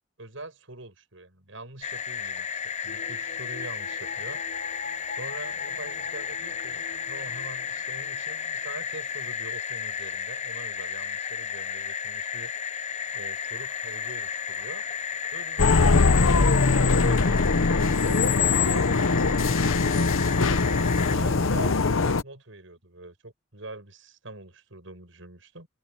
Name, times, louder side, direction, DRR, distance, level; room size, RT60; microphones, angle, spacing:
voice 1, 0.2-4.4 5.1-12.5 13.1-14.8 15.3-18.2 18.7-25.7, right 2 dB, 75° right, 6.7 m, -44 dB
sound 1, 1.8-21.1, left 7 dB, 35° left, 0.6 m, -33 dB
sound 2, 2.9-8.8 9.1-9.2, left 4 dB, 50° left, 6.6 m, -44 dB
sound 3, 15.6-22.2, left 4 dB, 85° left, 0.8 m, -21 dB
open air
head